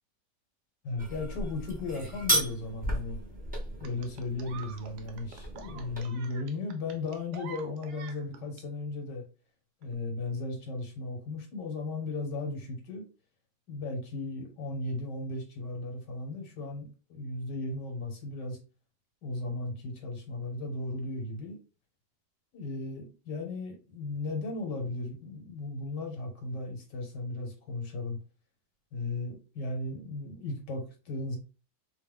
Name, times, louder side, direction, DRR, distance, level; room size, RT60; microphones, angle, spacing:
voice 1, 0.8-3.2 3.8-9.2 9.8-13.0 13.7-18.6 19.2-21.6 22.5-28.2 28.9-31.4, left 2 dB, 70° left, 2 dB, 1.6 m, -36 dB
sound 1, 1.0-6.0, right 1 dB, 5° right, 0.7 m, -34 dB
sound 2, 3.8-8.6 9.8-9.9, right 5 dB, 75° right, 1.1 m, -47 dB
3.2 x 2.1 x 3.3 m, 0.32 s
omnidirectional pair, 1.9 m